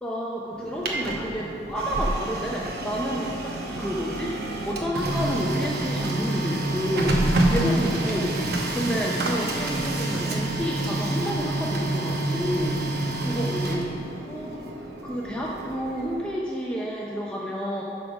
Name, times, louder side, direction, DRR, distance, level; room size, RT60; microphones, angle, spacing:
voice 1, 0.0-8.3 8.7-13.8 14.3-14.6 15.0-17.8, equal, 5° left, -4 dB, 0.5 m, -30 dB
Printer, 0.5-16.3, right 2 dB, 55° right, 0.9 m, -28 dB
10.0 x 3.6 x 6.0 m, 2.7 s
head